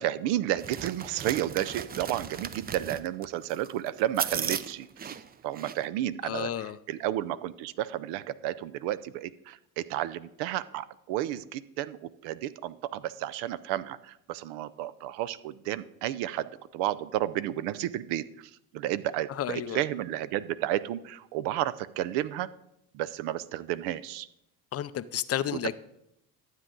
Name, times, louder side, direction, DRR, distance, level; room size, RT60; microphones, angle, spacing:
voice 1, 0.0-5.1 5.4-22.5 22.9-24.3 25.5-25.8, right 13 dB, 70° right, 16 dB, 0.6 m, -32 dB
sound 1, 0.6-5.9, right 7 dB, 20° right, 0.4 m, -36 dB
voice 2, 6.2-6.8 19.3-19.8 24.7-25.8, left 11 dB, 35° left, 15 dB, 0.5 m, -32 dB
12.0 x 8.1 x 3.8 m, 0.81 s
hypercardioid pair, 75°, 43 cm